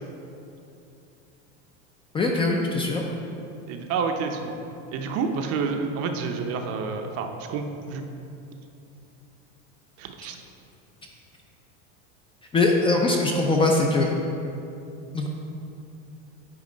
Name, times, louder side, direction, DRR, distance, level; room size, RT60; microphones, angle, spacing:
voice 1, 2.1-3.0 12.5-14.1 15.1-15.3, left 2 dB, 15° left, 0 dB, 0.4 m, -21 dB
voice 2, 3.7-4.5 4.9-8.0 10.0-10.4, right 5 dB, 45° right, 5 dB, 0.7 m, -29 dB
8.6 x 3.6 x 5.1 m, 2.6 s
supercardioid pair, 140°, 35 cm